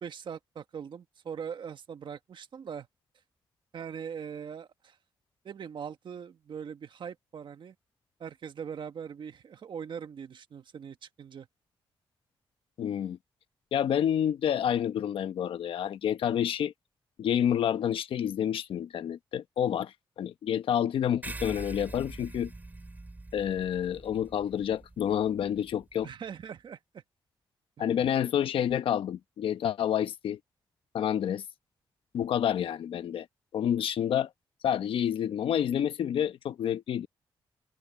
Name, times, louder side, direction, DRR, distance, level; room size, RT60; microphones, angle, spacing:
voice 1, 0.0-2.9 3.7-5.0 5.4-7.7 8.2-11.5 26.0-27.0 27.8-28.1, right 7 dB, 60° right, 1.5 m, -41 dB
voice 2, 12.8-13.2 13.7-16.7 17.2-22.5 23.3-26.1 27.8-30.4 30.9-31.4 32.1-33.3 33.5-34.3 34.6-37.1, left 9 dB, 85° left, 1.0 m, -29 dB
sound 1, 21.2-26.1, right 2 dB, 20° right, 3.5 m, -44 dB
cardioid pair, 105°, 9 cm